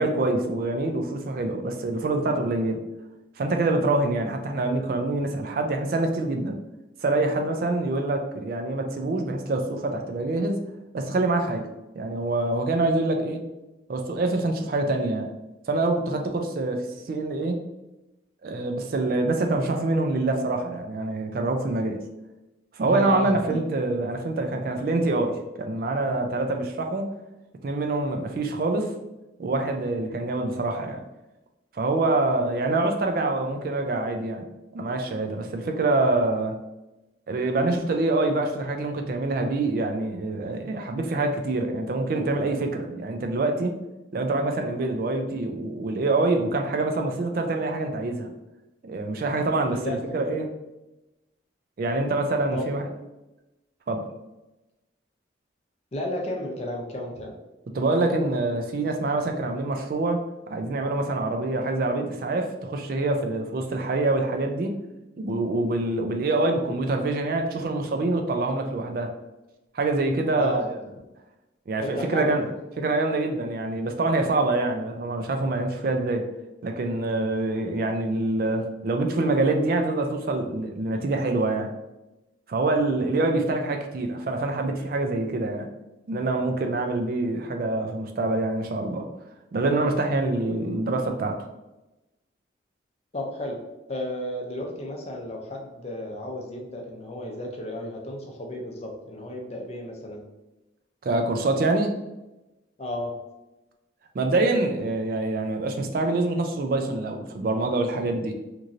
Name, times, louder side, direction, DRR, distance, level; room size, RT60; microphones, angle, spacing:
voice 1, 0.0-2.8 3.4-6.6 7.0-10.6 10.9-11.7 12.0-13.4 13.9-15.3 15.7-16.8 17.1-17.6 18.4-22.0 22.7-27.0 27.6-28.9 29.4-31.0 31.7-34.4 34.7-36.5 37.3-43.8 44.1-48.3 48.8-50.5 51.8-52.8 53.9-54.0 57.7-60.2 60.5-64.7 65.2-69.1 69.7-70.7 71.7-72.4 72.8-76.2 76.6-81.7 82.5-85.7 86.1-89.1 89.5-91.3 101.0-101.9 104.1-108.3, right 2 dB, 50° right, 4 dB, 0.3 m, -25 dB
voice 2, 22.9-23.6 49.7-50.3 52.5-52.7 55.9-57.3 70.3-70.6 71.8-72.3 93.1-93.6 93.9-100.2 102.8-103.1, left 1 dB, 35° left, 0 dB, 0.5 m, -33 dB
3.0 x 2.6 x 2.5 m, 1.0 s
head